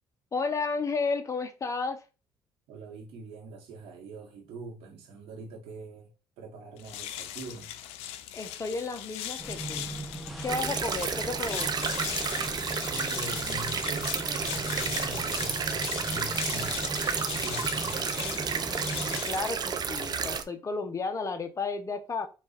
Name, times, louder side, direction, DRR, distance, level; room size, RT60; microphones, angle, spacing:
voice 1, 0.3-2.0 8.3-9.9 10.4-11.9 19.3-22.3, left 4 dB, 30° left, 1.0 m, -32 dB
voice 2, 2.7-6.1 6.4-7.7 12.9-18.3, right 2 dB, 80° right, 1.6 m, -43 dB
sound 1, 6.8-20.4, left 11 dB, 90° left, 0.4 m, -39 dB
sound 2, 9.4-19.2, right 2 dB, ahead, 0.9 m, -39 dB
sound 3, 10.5-20.4, right 6 dB, 45° right, 0.6 m, -31 dB
4.5 x 2.7 x 4.1 m
cardioid pair, 85°, 10 cm